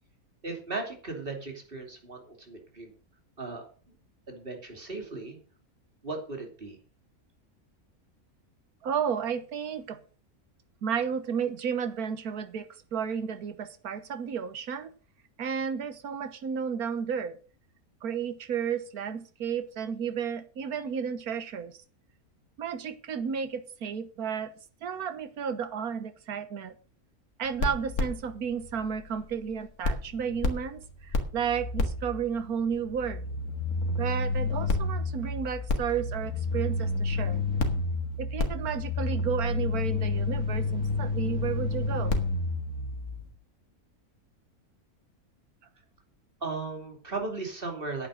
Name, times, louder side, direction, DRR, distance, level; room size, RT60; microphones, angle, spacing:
voice 1, 0.4-2.9 3.4-3.9 4.3-5.4 6.0-6.8 46.4-48.1, right 3 dB, 35° right, 3.1 m, -37 dB
voice 2, 8.8-10.0 10.8-14.9 15.4-17.4 18.0-21.7 22.6-24.5 24.8-26.7 27.4-33.3 34.0-37.4 38.2-42.2, right 7 dB, 85° right, 1.6 m, -32 dB
sound 1, 27.4-29.5 29.8-43.3, left 2 dB, 80° left, 2.2 m, -30 dB
10.0 x 8.9 x 6.3 m
omnidirectional pair, 1.5 m